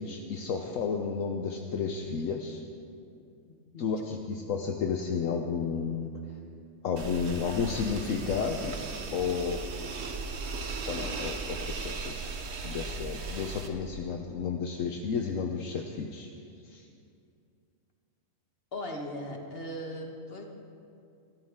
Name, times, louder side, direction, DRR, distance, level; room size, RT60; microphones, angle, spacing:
voice 1, 0.0-2.6 3.8-6.1 6.8-8.7 9.1-9.6 10.9-16.3 16.7-16.8, left 6 dB, 70° left, 3 dB, 1.2 m, -32 dB
sound 1, 7.0-13.7, right 4 dB, 55° right, 1.2 m, -37 dB
voice 2, 18.7-20.4, equal, 45° left, 1 dB, 1.9 m, -38 dB
23.0 x 14.0 x 3.7 m, 2.5 s
omnidirectional pair, 1.4 m